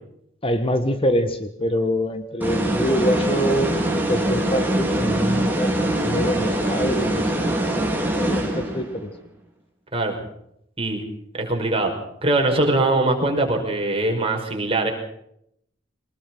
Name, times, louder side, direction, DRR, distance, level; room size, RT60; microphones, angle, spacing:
voice 1, 0.4-9.1, equal, 30° left, 8 dB, 1.6 m, -25 dB
sound 1, 2.4-9.0, right 1 dB, 10° right, 4.9 m, -23 dB
voice 2, 11.4-11.9 12.2-14.9, right 2 dB, 30° right, 2 dB, 5.4 m, -21 dB
23.5 x 20.0 x 6.2 m, 0.74 s
head